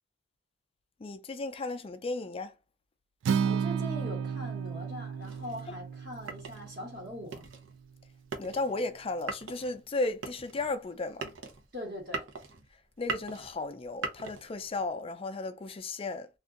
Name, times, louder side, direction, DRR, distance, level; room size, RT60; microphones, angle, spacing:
voice 1, 1.0-2.5 8.4-11.3 13.0-16.3, left 3 dB, 30° left, 0.4 m, -34 dB
Acoustic guitar, 3.2-7.5, right 6 dB, 65° right, 0.3 m, -33 dB
voice 2, 3.4-7.4 11.7-12.3, equal, 50° right, 1.3 m, -41 dB
sound 1, 5.2-14.9, right 4 dB, 85° right, 0.8 m, -42 dB
2.6 x 2.4 x 3.6 m
head